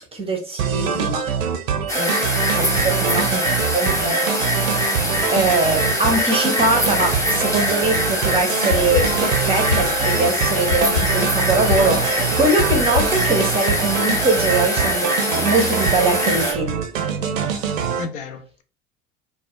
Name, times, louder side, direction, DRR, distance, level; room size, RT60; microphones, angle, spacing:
voice 1, 0.1-1.2 2.5-3.4 3.7-4.3 5.3-16.8, right 2 dB, 15° right, 0.6 m, -22 dB
sound 1, 0.6-18.0, right 7 dB, 80° right, 0.5 m, -24 dB
sound 2, 1.9-16.5, left 1 dB, 10° left, 0.9 m, -23 dB
voice 2, 2.0-2.4 3.0-3.6 18.0-18.6, left 6 dB, 65° left, 0.5 m, -34 dB
sound 3, 8.4-13.5, left 6 dB, 85° left, 1.2 m, -28 dB
2.3 x 2.1 x 2.9 m
figure-of-eight pair, 80°, 40 cm